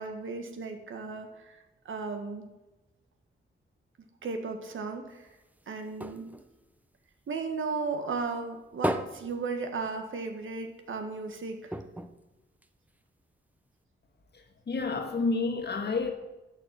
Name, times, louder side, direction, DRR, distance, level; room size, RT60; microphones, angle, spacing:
voice 1, 0.0-2.5 4.2-5.3 5.7-6.3 7.3-11.7, right 4 dB, 70° right, 1.6 m, -35 dB
sound 1, 5.1-7.7 8.1-10.4 10.7-10.8 11.1-11.2 11.7-13.2 13.8-13.9, right 1 dB, 5° right, 0.7 m, -37 dB
voice 2, 14.7-16.1, left 3 dB, 55° left, 1.6 m, -29 dB
11.5 x 6.3 x 7.5 m
cardioid pair, 80°, 21 cm